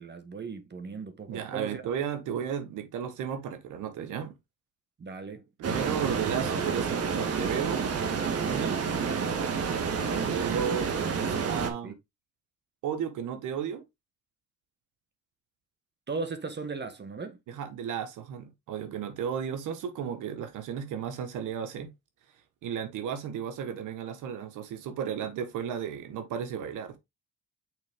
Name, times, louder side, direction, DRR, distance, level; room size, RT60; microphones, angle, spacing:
voice 1, 0.0-1.8 5.0-5.5 11.6-11.9 16.1-17.4, right 4 dB, 35° right, 1.4 m, -38 dB
voice 2, 1.3-4.4 5.6-7.8 8.3-8.8 10.3-10.9 11.2-11.9 12.8-13.8 17.5-21.9 22.6-27.0, right 8 dB, 90° right, 1.4 m, -34 dB
sound 1, 5.6-11.7, right 6 dB, 55° right, 1.5 m, -29 dB
6.5 x 4.0 x 3.6 m
cardioid pair, 90°, 30 cm